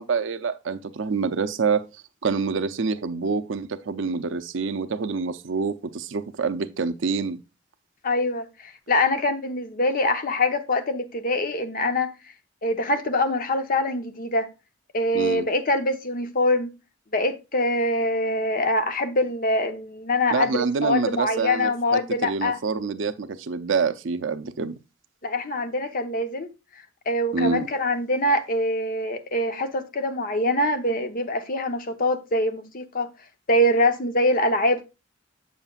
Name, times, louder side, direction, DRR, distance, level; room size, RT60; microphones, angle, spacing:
voice 1, 0.0-1.8 2.2-7.4 15.1-15.5 20.3-24.7 27.3-27.7, right 5 dB, 70° right, 0.6 m, -26 dB
voice 2, 8.0-12.1 12.6-14.5 14.9-16.7 17.1-22.6 25.2-26.5 27.1-33.1 33.5-34.8, left 1 dB, 45° left, 0.9 m, -24 dB
8.0 x 7.2 x 2.4 m
head